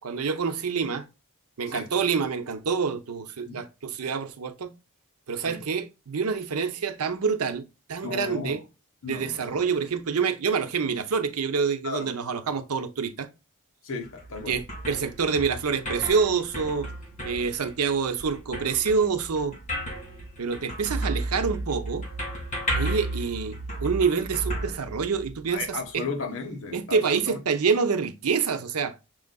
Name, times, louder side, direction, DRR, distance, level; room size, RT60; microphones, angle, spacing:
voice 1, 0.0-1.1 1.6-4.7 5.3-7.6 7.9-8.6 9.0-13.3 14.5-16.9 17.2-19.5 20.4-22.0 22.7-26.1 26.7-28.9, right 5 dB, 80° right, 0.7 m, -27 dB
voice 2, 8.0-8.6 9.0-9.7 11.8-12.1 13.8-14.6 25.5-27.4, left 4 dB, 65° left, 1.1 m, -35 dB
sound 1, 14.0-25.5, right 1 dB, 35° left, 2.0 m, -34 dB
6.2 x 3.8 x 2.2 m
head